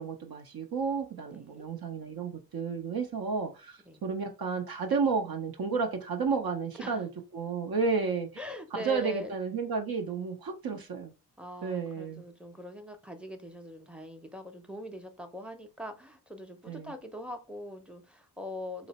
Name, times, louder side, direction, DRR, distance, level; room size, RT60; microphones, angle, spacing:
voice 1, 0.0-7.1 7.3-8.3 8.7-11.1 11.6-12.2 16.7-16.9, right 5 dB, 60° right, 0.7 m, -32 dB
voice 2, 1.3-1.7 3.8-4.0 6.8-7.0 8.4-9.4 11.4-18.9, left 1 dB, 5° right, 0.6 m, -42 dB
3.1 x 2.0 x 4.0 m
cardioid pair, 55°, 40 cm